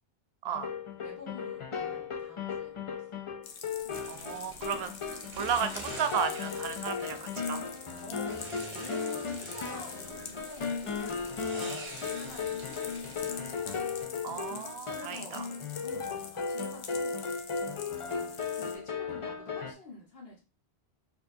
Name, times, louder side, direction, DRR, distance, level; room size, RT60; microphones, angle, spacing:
sound 1, 0.5-19.7, left 5 dB, 45° left, 0.4 m, -36 dB
voice 1, 0.9-3.1 3.8-4.0 8.0-13.9 14.9-17.3 17.6-20.4, left 2 dB, 70° left, -2 dB, 1.5 m, -49 dB
sound 2, 3.4-18.8, left 6 dB, 90° left, 0.9 m, -46 dB
sound 3, 3.9-14.0, right 2 dB, 50° right, 0.8 m, -47 dB
voice 2, 4.1-7.6 14.2-15.4, right 8 dB, 80° right, 9 dB, 0.8 m, -34 dB
4.3 x 2.9 x 2.7 m, 0.32 s
omnidirectional pair, 1.0 m